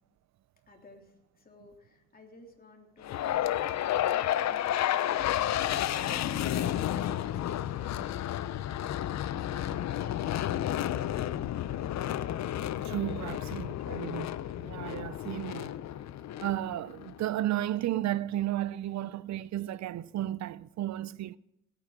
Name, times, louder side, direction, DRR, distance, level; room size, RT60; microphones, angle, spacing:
voice 1, 0.7-3.6 4.0-5.0 5.9-8.2 13.3-13.4, left 3 dB, 30° left, 3.2 m, -53 dB
sound 1, 3.0-17.2, left 12 dB, 60° left, 0.7 m, -31 dB
voice 2, 12.8-14.3 14.6-15.7 16.4-21.4, right 13 dB, 65° right, 0.6 m, -33 dB
17.5 x 9.2 x 5.1 m
cardioid pair, 90°, 30 cm